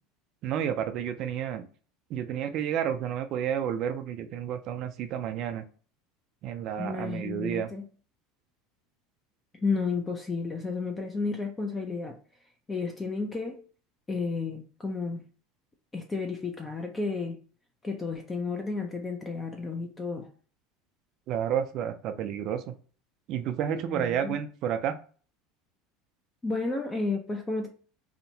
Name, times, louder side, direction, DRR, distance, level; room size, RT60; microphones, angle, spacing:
voice 1, 0.4-1.7 2.1-5.6 6.4-7.7 21.3-22.7 23.3-25.0, right 9 dB, 55° right, 0.3 m, -30 dB
voice 2, 6.8-7.8 9.6-12.2 12.7-13.6 14.1-15.2 15.9-17.4 17.8-20.3 23.9-24.3 26.4-27.7, left 4 dB, 20° left, 0.4 m, -32 dB
2.7 x 2.1 x 2.6 m
supercardioid pair, 100°, 0 cm